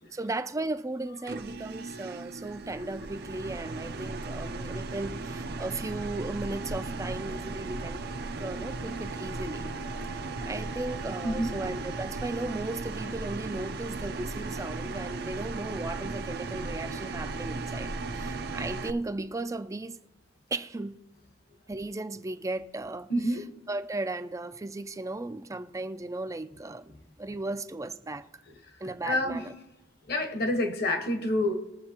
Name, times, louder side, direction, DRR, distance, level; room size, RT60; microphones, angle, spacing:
voice 1, 0.1-8.0 8.4-9.7 10.1-20.0 20.5-21.0 21.7-26.9 27.2-28.3 28.8-29.5, right 2 dB, 15° right, 0.4 m, -36 dB
sound 1, 1.3-18.9, right 3 dB, 55° right, 0.6 m, -36 dB
voice 2, 11.2-11.5 23.1-23.5 29.1-29.4 30.1-31.5, left 1 dB, 55° left, 1.3 m, -28 dB
21.5 x 7.5 x 3.0 m
head